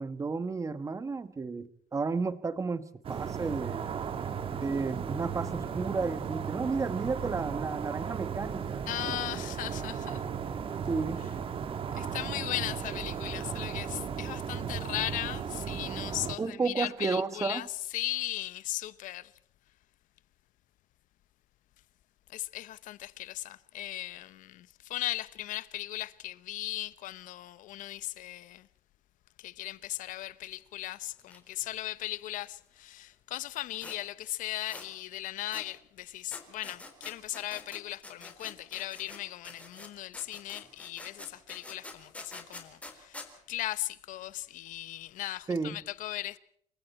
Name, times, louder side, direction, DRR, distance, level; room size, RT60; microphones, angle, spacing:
voice 1, 0.0-3.9 4.5-8.8 10.9-11.2 16.4-17.6 45.5-45.8, right 4 dB, 20° right, 1.3 m, -32 dB
sound 1, 3.0-16.4, right 7 dB, 40° right, 1.7 m, -36 dB
voice 2, 8.9-10.2 11.9-19.3 22.3-28.7 29.4-46.4, left 15 dB, 70° left, 1.0 m, -37 dB
sound 2, 31.2-31.4 31.6-31.7 33.8-34.0 34.7-34.9 35.5-35.7 36.3-39.2 39.4-43.3, left 2 dB, 10° left, 4.0 m, -46 dB
28.0 x 23.5 x 4.5 m
cardioid pair, 125°, 14 cm